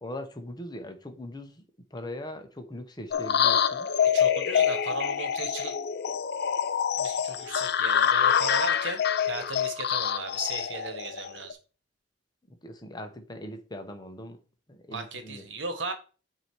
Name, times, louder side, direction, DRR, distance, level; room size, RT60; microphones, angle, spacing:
voice 1, 0.0-1.6 1.9-3.9 12.6-14.4 14.7-15.4, left 1 dB, 20° left, 0.9 m, -40 dB
sound 1, 3.1-11.5, left 8 dB, 60° left, 0.4 m, -26 dB
voice 2, 4.1-5.7 7.0-9.0 9.3-11.6 14.9-15.9, right 3 dB, 75° right, 1.1 m, -36 dB
8.3 x 2.8 x 4.6 m
head